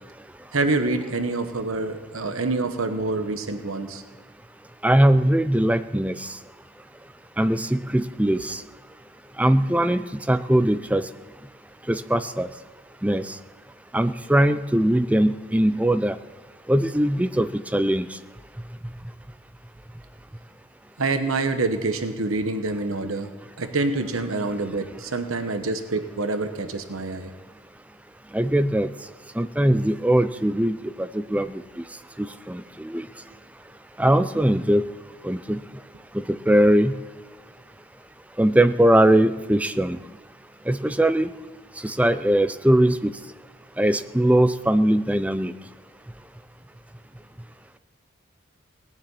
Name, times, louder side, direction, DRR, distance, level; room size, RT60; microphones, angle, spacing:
voice 1, 0.5-4.0 21.0-23.3 23.6-27.3, right 3 dB, 90° right, 8 dB, 1.1 m, -26 dB
voice 2, 4.8-6.4 7.4-8.6 9.4-11.1 11.9-12.5 13.0-13.4 13.9-16.2 16.7-18.1 28.3-28.9 29.4-31.6 32.2-33.1 34.0-34.8 35.2-35.6 36.1-37.0 38.4-40.0 40.7-41.3 41.8-43.1 43.8-45.5, right 1 dB, 5° right, 12 dB, 0.4 m, -21 dB
18.0 x 7.2 x 9.5 m, 1.3 s
head